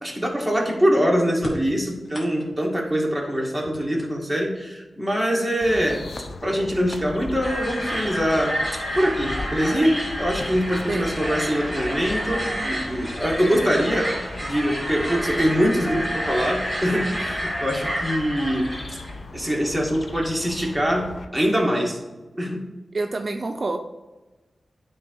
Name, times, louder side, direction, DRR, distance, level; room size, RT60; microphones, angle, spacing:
voice 1, 0.0-6.0 6.4-8.6 8.9-18.7 19.3-22.0 22.4-22.7, equal, ahead, -1 dB, 2.0 m, -23 dB
sound 1, 1.4-2.8 3.4-4.5 5.6-5.7 6.6-6.7 7.2-7.7, left 1 dB, 40° left, 2.3 m, -39 dB
sound 2, 5.6-21.3, left 3 dB, 65° left, 0.7 m, -38 dB
sound 3, 7.4-19.1, equal, 20° left, 2.5 m, -30 dB
voice 2, 22.9-23.8, right 3 dB, 50° right, 5 dB, 0.5 m, -27 dB
9.6 x 3.8 x 4.8 m, 1.2 s
wide cardioid pair, 80°, 0 cm